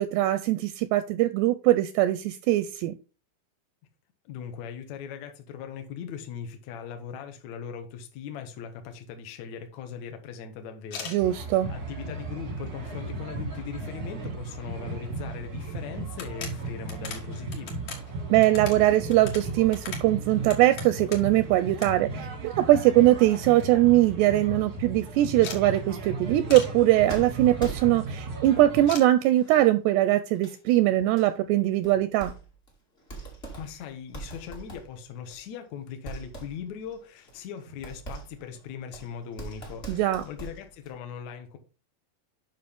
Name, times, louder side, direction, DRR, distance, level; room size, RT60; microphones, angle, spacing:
voice 1, 0.0-2.9 11.1-11.7 18.3-32.3 39.9-40.2, right 15 dB, 85° right, 2.5 m, -22 dB
voice 2, 4.2-17.8 33.6-41.6, left 7 dB, 75° left, 1.6 m, -40 dB
sound 1, 10.8-11.2 11.9-12.0 12.5-13.2 13.5-13.6 13.8-13.9 15.3-15.4 15.7-15.8 16.1-21.4 21.8-21.9 22.2-23.0 23.3-23.4 23.7-23.8 24.0-24.4 25.4-25.6 26.5-26.7 28.9-29.1, left 6 dB, 55° left, 2.3 m, -40 dB
sound 2, 11.2-29.0, right 3 dB, 60° right, 1.0 m, -36 dB
sound 3, 27.1-28.3 29.0-29.7 30.3-30.6 31.2-31.3 31.8-32.7 33.0-35.7 36.0-41.0, right 3 dB, 30° left, 1.0 m, -42 dB
9.5 x 5.7 x 3.5 m
omnidirectional pair, 5.1 m